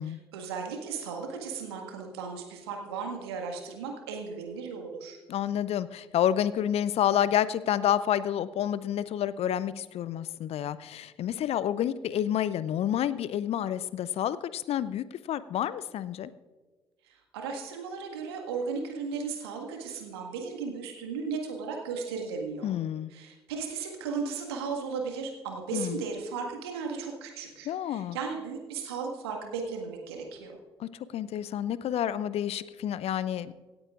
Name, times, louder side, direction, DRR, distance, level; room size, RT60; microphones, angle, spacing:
voice 1, 0.0-5.2 17.0-22.7 23.1-30.6, right 5 dB, 75° right, 2 dB, 1.7 m, -36 dB
voice 2, 5.3-16.3 22.6-23.1 25.7-26.0 27.7-28.2 30.8-33.5, left 10 dB, 50° left, 17 dB, 0.5 m, -29 dB
26.0 x 8.7 x 2.5 m, 1.3 s
figure-of-eight pair, 45°, 13 cm